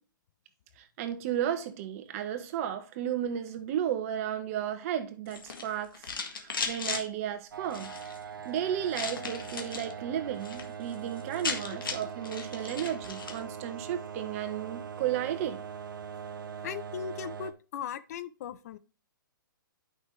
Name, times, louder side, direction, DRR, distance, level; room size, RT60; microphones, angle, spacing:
voice 1, 0.8-6.1 6.4-7.9 8.4-15.6, right 10 dB, 40° right, 1.2 m, -33 dB
Change Rattle, 5.3-7.0 7.6-8.2 8.9-9.9 10.3-10.7 10.9-11.0 11.2-13.4, left 5 dB, 80° left, 1.8 m, -36 dB
sound 1, 7.5-17.5, right 7 dB, 75° right, 0.9 m, -41 dB
voice 2, 16.6-18.8, left 8 dB, 50° left, 0.6 m, -38 dB
9.6 x 5.7 x 3.2 m
hypercardioid pair, 130°, 11 cm